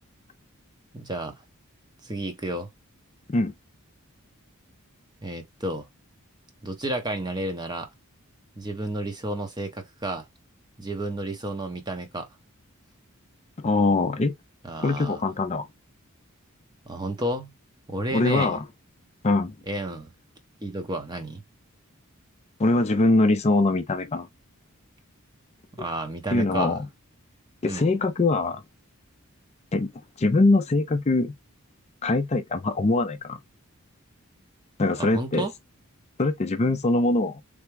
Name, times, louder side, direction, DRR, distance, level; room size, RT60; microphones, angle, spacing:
voice 1, 0.9-1.4 2.0-2.7 5.2-5.9 6.6-7.9 8.6-10.3 10.8-12.3 14.6-15.2 16.9-17.5 17.9-18.6 19.7-20.1 20.6-21.4 25.8-26.8 27.7-27.9 35.0-35.5, right 1 dB, 20° right, 0.8 m, -31 dB
voice 2, 13.6-14.3 14.8-15.7 18.1-18.6 19.2-19.5 22.6-24.3 26.3-26.9 27.6-28.6 29.7-29.9 30.2-31.3 32.0-33.4 34.8-35.5 36.2-37.4, left 2 dB, 30° left, 0.4 m, -22 dB
3.4 x 2.2 x 3.2 m
head